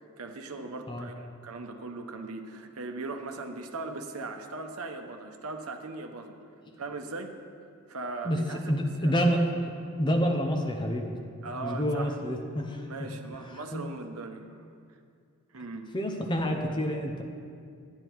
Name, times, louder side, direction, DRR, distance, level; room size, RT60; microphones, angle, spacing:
voice 1, 0.2-6.4 6.8-7.4 7.9-8.7 9.0-9.1 11.4-12.2 12.8-14.5 15.5-15.9, right 3 dB, 75° right, 5 dB, 0.8 m, -39 dB
voice 2, 8.2-11.1 11.6-13.1 13.4-13.9 15.9-17.2, equal, 20° left, 3 dB, 0.7 m, -28 dB
10.5 x 9.9 x 4.6 m, 2.3 s
head